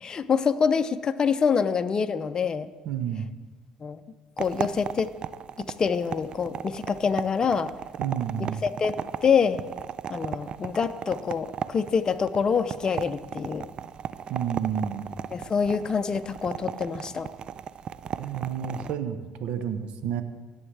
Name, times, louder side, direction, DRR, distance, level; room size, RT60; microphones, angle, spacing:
voice 1, 0.0-2.7 3.8-4.0 4.4-5.1 5.6-7.7 8.4-9.6 10.1-13.7 15.3-17.3, left 6 dB, 40° left, 10 dB, 0.6 m, -26 dB
voice 2, 2.9-3.3 8.0-8.6 14.3-15.1 18.2-20.2, right 8 dB, 70° right, 10 dB, 0.8 m, -30 dB
sound 1, 4.4-19.0, right 8 dB, 50° right, 0.4 m, -36 dB
17.0 x 7.3 x 3.4 m, 1.3 s
supercardioid pair, 75°, 2 cm